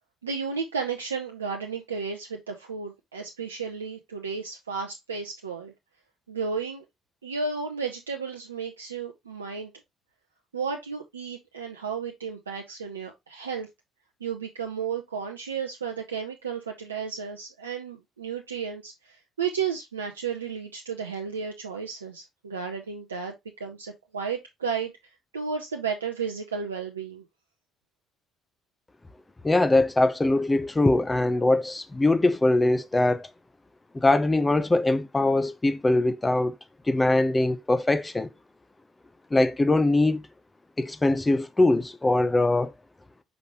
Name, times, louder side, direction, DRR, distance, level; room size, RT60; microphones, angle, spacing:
voice 1, 0.2-5.7 6.3-6.8 7.2-9.7 10.5-13.7 14.2-24.9 25.3-27.2, right 5 dB, 85° right, 0.6 m, -33 dB
voice 2, 29.4-33.3 33.9-36.5 36.9-38.3 39.3-40.2 40.8-42.7, left 2 dB, 20° left, 0.9 m, -22 dB
6.0 x 5.3 x 3.0 m
figure-of-eight pair, 50°, 0 cm